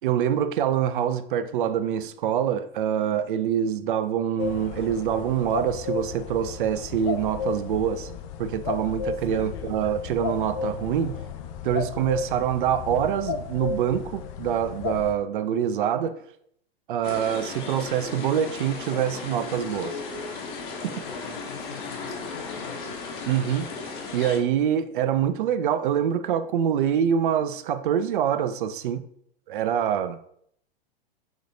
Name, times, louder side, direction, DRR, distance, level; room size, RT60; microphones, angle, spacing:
voice 1, 0.0-8.1 8.4-11.2 11.6-16.2 16.9-20.0 20.8-20.9 23.3-23.7 24.1-29.0 29.5-30.2, right 9 dB, 60° right, 0.4 m, -25 dB
sound 1, 4.4-15.1, left 6 dB, 35° left, 0.4 m, -33 dB
voice 2, 9.3-9.8 21.0-22.9, left 6 dB, 85° left, 0.8 m, -43 dB
sound 2, 17.0-24.4, left 4 dB, 55° left, 1.1 m, -35 dB
3.6 x 3.5 x 3.9 m
figure-of-eight pair, 100°, 30 cm